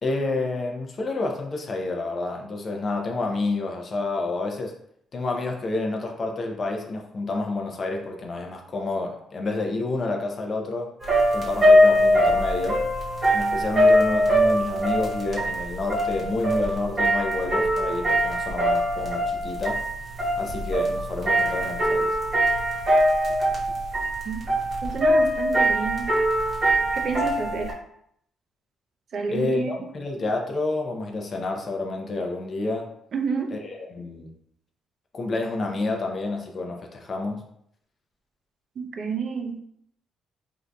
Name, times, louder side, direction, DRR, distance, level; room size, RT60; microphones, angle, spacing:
voice 1, 0.0-4.7 5.1-10.9 11.3-12.8 13.3-19.8 20.4-22.2 29.3-32.9 33.5-34.3 35.1-37.4, left 2 dB, 40° left, 1 dB, 0.5 m, -29 dB
sound 1, 11.0-27.7, equal, 40° right, 1.0 m, -22 dB
voice 2, 24.8-26.1 26.9-27.7 29.1-29.7 33.1-33.5 38.8-39.5, right 5 dB, 60° right, 4 dB, 0.4 m, -29 dB
3.7 x 2.6 x 2.2 m, 0.70 s
cardioid pair, 90°, 0 cm